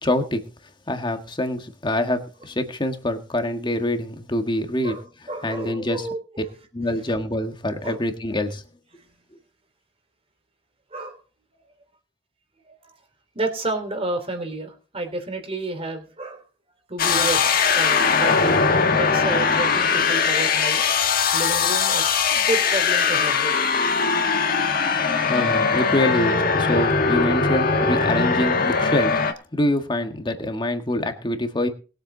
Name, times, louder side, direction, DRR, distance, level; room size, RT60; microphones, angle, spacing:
voice 1, 0.0-0.4 0.9-5.0 5.4-6.1 6.7-8.6 25.3-29.1 29.5-31.7, left 1 dB, 25° left, 6 dB, 1.6 m, -25 dB
voice 2, 4.8-6.4 7.8-8.0 10.9-11.2 12.6-12.9 13.3-16.4 16.9-18.7 18.9-20.8 21.3-23.6, right 2 dB, 30° right, 6 dB, 3.2 m, -30 dB
sound 1, 17.0-29.3, left 5 dB, 50° left, 1.7 m, -20 dB
21.0 x 7.9 x 3.9 m, 0.36 s
head